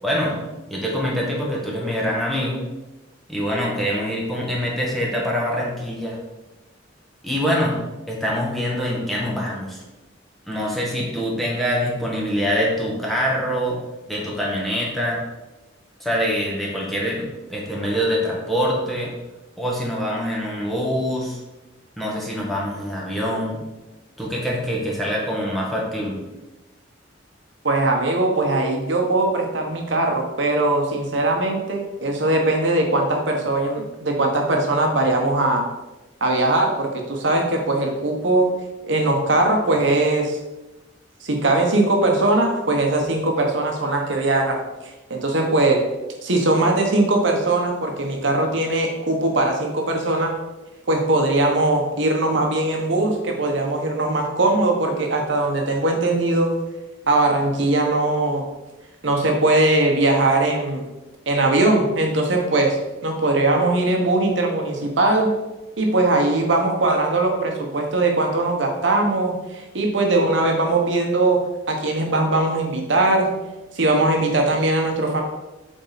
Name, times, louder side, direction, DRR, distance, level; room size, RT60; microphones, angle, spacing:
voice 1, 0.0-0.4 0.7-2.7 3.3-6.2 7.2-7.7 8.1-9.8 10.5-13.8 14.1-15.2 16.0-19.1 19.6-21.4 22.0-23.6 24.2-26.2, equal, ahead, -4 dB, 1.5 m, -24 dB
voice 2, 27.6-35.6 36.2-38.5 38.9-40.4 41.2-45.8 46.2-50.3 50.9-56.5 57.1-58.4 59.0-60.8 61.3-62.8 63.0-65.3 65.8-71.4 71.7-73.3 73.7-75.2, right 2 dB, 70° right, 2 dB, 1.1 m, -20 dB
7.5 x 4.2 x 4.0 m, 1.0 s
head